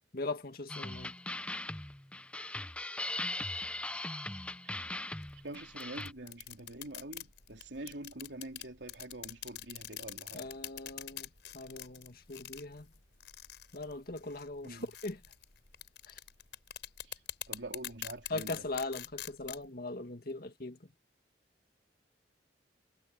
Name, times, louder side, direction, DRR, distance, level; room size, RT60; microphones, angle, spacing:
voice 1, 0.1-1.1 10.3-11.3 11.5-12.9 13.7-15.2 16.1-16.2 18.3-20.8, left 2 dB, 55° left, 2.0 m, -40 dB
sound 1, 0.7-6.1, left 2 dB, 5° left, 0.5 m, -39 dB
voice 2, 4.6-5.2 5.4-10.5 14.6-14.9 17.0-17.2 17.5-18.6, right 2 dB, 90° right, 3.4 m, -46 dB
sound 2, 5.2-19.7, left 12 dB, 80° left, 4.6 m, -46 dB
head